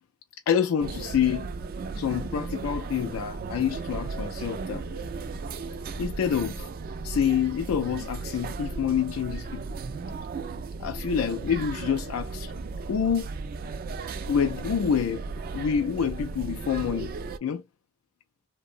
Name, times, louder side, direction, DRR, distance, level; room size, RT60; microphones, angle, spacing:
voice 1, 0.5-1.5 2.0-4.8 6.0-6.7 7.0-9.6 10.8-12.5 12.9-13.3 14.3-15.2 15.5-17.1 17.4-17.6, left 7 dB, 90° left, 0.3 m, -27 dB
sound 1, 0.8-17.4, right 4 dB, 45° right, 0.3 m, -35 dB
2.7 x 2.0 x 2.5 m
head